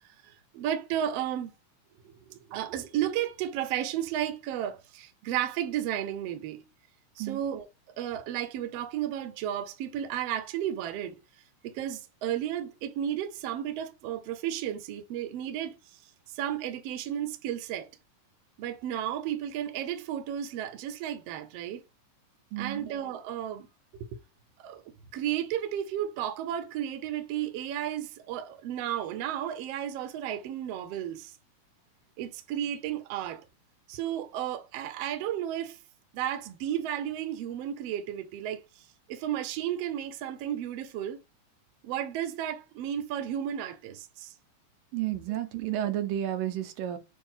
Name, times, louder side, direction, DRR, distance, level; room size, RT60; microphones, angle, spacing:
voice 1, 0.2-1.5 2.5-6.6 7.2-7.7 8.0-11.2 11.6-15.7 16.3-17.9 18.6-21.8 22.6-23.7 24.6-24.8 25.1-31.3 32.2-33.4 33.9-35.8 36.1-38.6 39.1-41.2 41.8-44.3 45.3-45.4, right 11 dB, 65° right, 1.6 m, -33 dB
voice 2, 22.5-22.9 44.9-47.0, right 12 dB, 90° right, 2.5 m, -31 dB
6.8 x 2.8 x 5.6 m
omnidirectional pair, 3.9 m